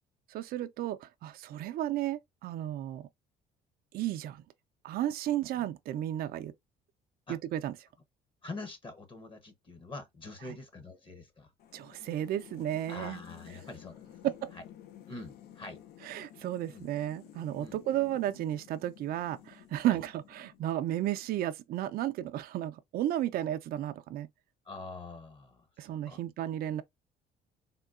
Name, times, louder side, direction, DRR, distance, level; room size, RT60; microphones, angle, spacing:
voice 1, 0.3-3.1 3.9-4.4 4.8-6.5 7.3-7.7 11.7-13.2 14.2-14.5 16.0-24.3 25.8-26.8, right 12 dB, 65° right, 0.4 m, -33 dB
voice 2, 8.4-11.5 12.9-14.6 15.1-15.8 16.7-16.9 17.6-17.8 19.9-20.0 24.6-26.2, left 3 dB, 30° left, 0.8 m, -45 dB
sound 1, 11.6-20.9, left 11 dB, 75° left, 0.6 m, -53 dB
3.6 x 2.2 x 2.4 m
cardioid pair, 110°, 17 cm